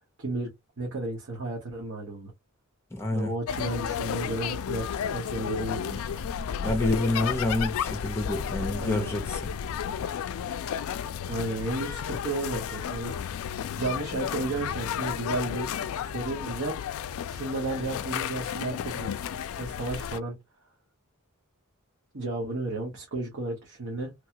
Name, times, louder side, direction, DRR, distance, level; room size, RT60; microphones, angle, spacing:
voice 1, 0.2-0.5 0.8-2.3 3.1-6.1 8.7-9.1 11.3-13.1 13.8-15.7 16.0-16.8 17.3-19.1 19.6-20.4 22.1-24.1, right 2 dB, 60° right, 1.2 m, -33 dB
voice 2, 2.9-3.3 6.6-9.4, left 2 dB, 10° left, 0.7 m, -28 dB
sound 1, 3.5-20.2, left 8 dB, 70° left, 0.3 m, -32 dB
3.2 x 2.2 x 2.8 m
head